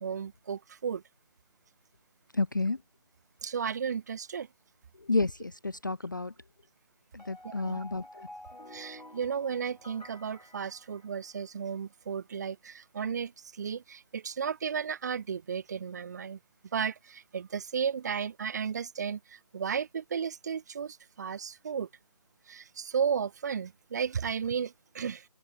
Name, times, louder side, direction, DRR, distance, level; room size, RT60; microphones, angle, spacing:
voice 1, 0.0-1.0 3.4-4.5 7.4-7.8 8.7-13.3 13.6-16.4 16.7-21.9 22.5-25.2, right 7 dB, 25° right, 1.2 m, -34 dB
voice 2, 2.3-2.8 5.0-6.3 7.1-8.3, left 3 dB, 30° left, 0.4 m, -31 dB
sound 1, 7.2-11.5, left 1 dB, 85° left, 7.6 m, -50 dB
open air
figure-of-eight pair, 155°, 21 cm